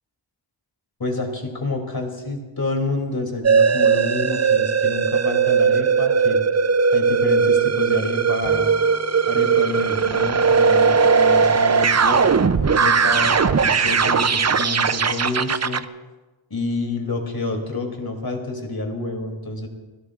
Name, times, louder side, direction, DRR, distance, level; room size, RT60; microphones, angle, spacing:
voice 1, 1.0-6.4 6.9-8.7 9.3-12.2 12.5-15.8 16.5-19.7, left 2 dB, 45° left, 2 dB, 2.8 m, -28 dB
sound 1, 3.4-15.8, right 5 dB, 35° right, 0.5 m, -18 dB
Bowed string instrument, 8.4-11.7, right 1 dB, 70° right, 2.3 m, -45 dB
30.0 x 13.0 x 2.4 m, 1.2 s
wide cardioid pair, 50°, 49 cm